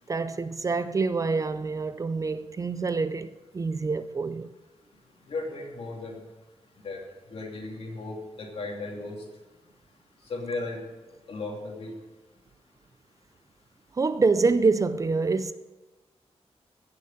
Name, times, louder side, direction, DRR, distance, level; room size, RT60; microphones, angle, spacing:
voice 1, 0.1-4.5 13.9-15.5, right 4 dB, 30° right, 0.4 m, -26 dB
voice 2, 5.3-6.2 6.8-7.0 7.3-9.2 10.3-10.8 11.3-11.9, left 3 dB, 60° left, 3.0 m, -35 dB
16.0 x 6.8 x 6.7 m
wide cardioid pair, 175°, 11 cm